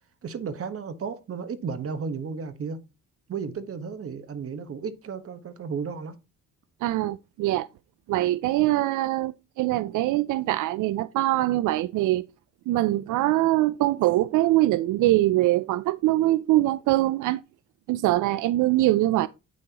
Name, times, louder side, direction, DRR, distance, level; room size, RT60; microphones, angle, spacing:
voice 1, 0.2-2.8 3.3-6.2, right 5 dB, 50° right, 1.3 m, -33 dB
voice 2, 6.8-7.7 8.1-12.2 12.7-17.4 17.9-19.3, right 16 dB, 80° right, 0.5 m, -23 dB
8.9 x 6.3 x 2.9 m
cardioid pair, 90°, 30 cm